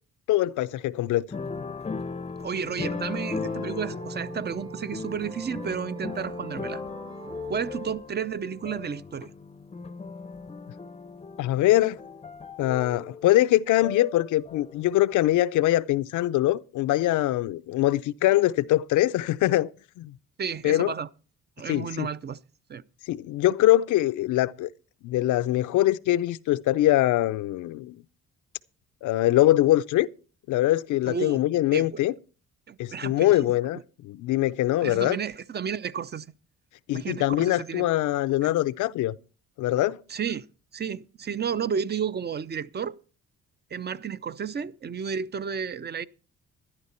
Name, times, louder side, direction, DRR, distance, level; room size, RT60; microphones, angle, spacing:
voice 1, 0.3-1.2 11.4-12.0 12.6-19.7 20.0-20.2 20.6-20.9 21.7-22.1 23.1-24.7 25.0-28.0 29.0-30.1 30.5-32.1 32.8-35.2 36.9-39.1 39.6-40.0, left 15 dB, 80° left, 0.6 m, -23 dB
sound 1, 1.3-14.9 15.3-15.4, left 4 dB, 20° left, 0.6 m, -37 dB
voice 2, 2.4-6.8 7.5-9.3 20.4-21.1 21.6-22.4 22.7-22.8 31.0-31.4 31.7-32.0 32.7-33.8 34.8-36.3 36.9-37.9 38.4-38.5 40.1-40.5 40.7-43.0 43.7-46.1, right 7 dB, 35° right, 0.6 m, -32 dB
sound 2, 2.8-7.9, right 4 dB, 15° right, 0.9 m, -43 dB
13.0 x 11.0 x 4.3 m
cardioid pair, 90°, 30 cm